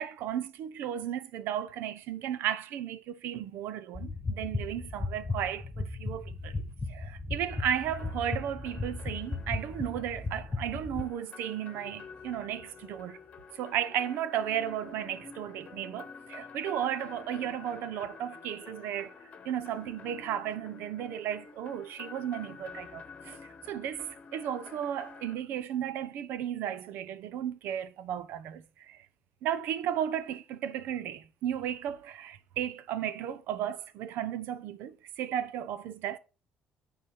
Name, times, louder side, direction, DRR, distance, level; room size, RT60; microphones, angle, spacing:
voice 1, 0.0-6.6 6.9-13.2 13.5-19.1 19.4-23.4 23.7-29.0 29.4-36.2, right 10 dB, 75° right, 0.8 m, -34 dB
sound 1, 3.9-11.0, left 3 dB, 10° left, 1.7 m, -36 dB
sound 2, 7.5-25.4, left 5 dB, 35° left, 1.1 m, -49 dB
9.5 x 4.1 x 5.9 m
cardioid pair, 140°, 4 cm